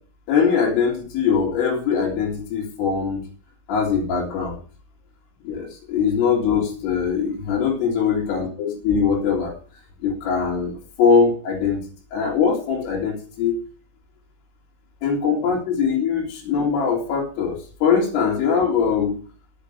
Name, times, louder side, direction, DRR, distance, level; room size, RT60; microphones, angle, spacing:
voice 1, 0.3-3.2 3.7-4.6 5.4-9.5 10.0-11.8 12.1-13.6 15.0-19.2, left 6 dB, 90° left, -5 dB, 5.0 m, -21 dB
11.5 x 7.5 x 6.6 m, 0.40 s
omnidirectional pair, 5.6 m